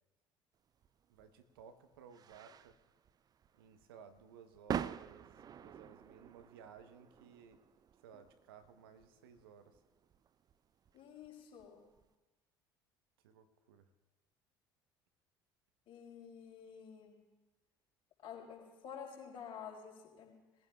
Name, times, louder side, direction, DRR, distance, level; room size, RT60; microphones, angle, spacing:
sound 1, 0.8-12.1, right 8 dB, 35° right, 0.4 m, -47 dB
voice 1, 1.1-2.8 3.5-7.6 8.0-9.8 13.2-13.9, right 7 dB, 80° right, 10 dB, 0.9 m, -58 dB
voice 2, 10.9-11.8 15.9-17.2 18.2-20.3, left 7 dB, 50° left, -1 dB, 4.6 m, -50 dB
22.0 x 15.0 x 2.3 m, 1.2 s
hypercardioid pair, 65°, 12 cm